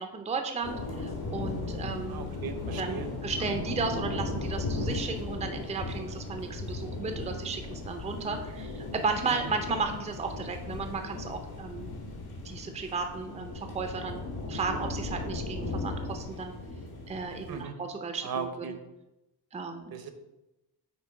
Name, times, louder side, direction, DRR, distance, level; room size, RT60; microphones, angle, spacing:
voice 1, 0.0-2.3 2.8-11.9 12.4-14.2 14.5-16.5 17.1-18.8 19.5-19.9, right 4 dB, 15° right, 5 dB, 0.5 m, -34 dB
sound 1, 0.6-17.6, left 3 dB, 65° left, 1.5 m, -36 dB
voice 2, 2.1-3.1 17.5-17.7 18.2-18.7 19.9-20.1, right 6 dB, 60° right, 8 dB, 0.8 m, -37 dB
8.2 x 3.0 x 5.0 m, 0.95 s
wide cardioid pair, 155°, 40 cm